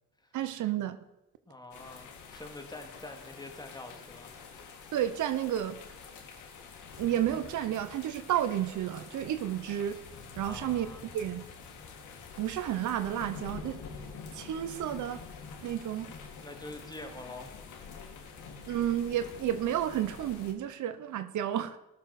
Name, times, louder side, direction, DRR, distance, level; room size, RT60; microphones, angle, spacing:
voice 1, 0.3-1.0 4.9-5.8 7.0-10.0 10.4-10.9 11.1-11.4 12.4-13.8 14.3-15.2 15.6-16.1 18.7-21.8, right 11 dB, 75° right, 11 dB, 1.1 m, -31 dB
voice 2, 1.5-4.3 10.4-11.0 16.4-17.5, left 2 dB, 15° left, 4 dB, 2.5 m, -45 dB
sound 1, 1.7-20.5, left 5 dB, 80° left, 2.7 m, -47 dB
18.5 x 7.1 x 6.1 m, 0.94 s
cardioid pair, 90°, 30 cm